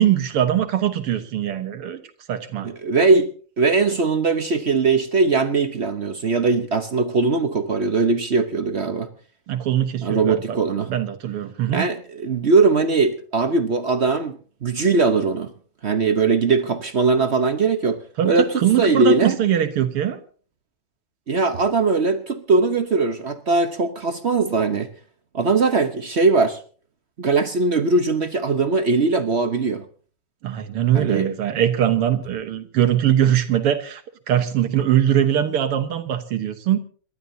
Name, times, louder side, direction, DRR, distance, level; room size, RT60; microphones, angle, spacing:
voice 1, 0.0-2.0 2.3-2.7 9.5-10.6 10.9-11.9 18.2-20.2 30.4-34.0 34.3-36.8, right 10 dB, 85° right, 8 dB, 2.2 m, -21 dB
voice 2, 2.6-9.1 10.0-10.9 11.7-15.5 15.8-18.5 18.8-19.4 21.3-24.9 25.3-26.6 27.2-29.8 30.9-31.3, right 4 dB, 55° right, 9 dB, 0.7 m, -20 dB
28.0 x 12.5 x 2.7 m, 0.41 s
omnidirectional pair, 2.4 m